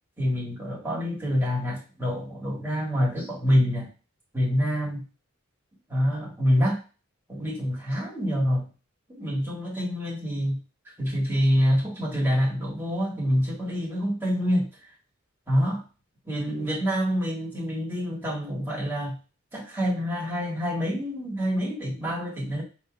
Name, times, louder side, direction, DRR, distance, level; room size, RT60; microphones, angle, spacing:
voice 1, 0.2-3.9 4.3-5.0 5.9-6.8 7.3-8.7 9.1-10.6 11.0-14.9 15.5-15.8 16.2-19.1 19.5-22.6, equal, 10° right, -5 dB, 1.6 m, -26 dB
4.6 x 3.0 x 2.3 m, 0.33 s
head